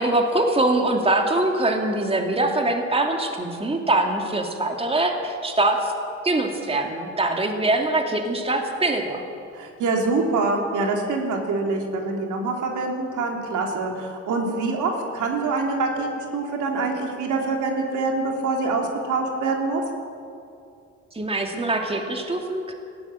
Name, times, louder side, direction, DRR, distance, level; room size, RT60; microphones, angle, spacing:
voice 1, 0.0-5.9 6.2-9.2 21.1-22.7, right 2 dB, 20° right, 3 dB, 2.5 m, -23 dB
voice 2, 9.5-19.8, right 3 dB, 80° right, 1 dB, 3.4 m, -25 dB
19.0 x 15.0 x 9.2 m, 2.5 s
cardioid pair, 90°, 30 cm